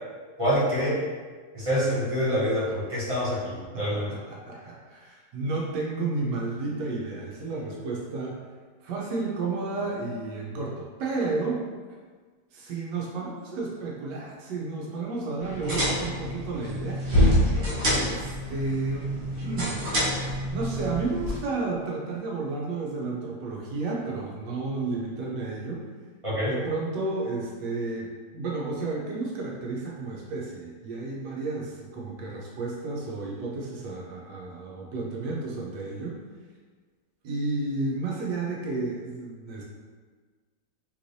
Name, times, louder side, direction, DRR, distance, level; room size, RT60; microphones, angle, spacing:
voice 1, 0.4-1.0 1.5-4.1 26.2-26.5, equal, 30° right, -9 dB, 0.7 m, -26 dB
voice 2, 3.7-8.4 8.8-11.6 12.5-17.0 17.9-19.8 20.5-25.9 26.4-36.2 37.2-39.6, right 3 dB, 90° right, -3 dB, 1.3 m, -32 dB
sound 1, 15.4-21.4, equal, 55° right, 1.3 m, -26 dB
3.1 x 3.0 x 2.6 m, 1.5 s
omnidirectional pair, 1.8 m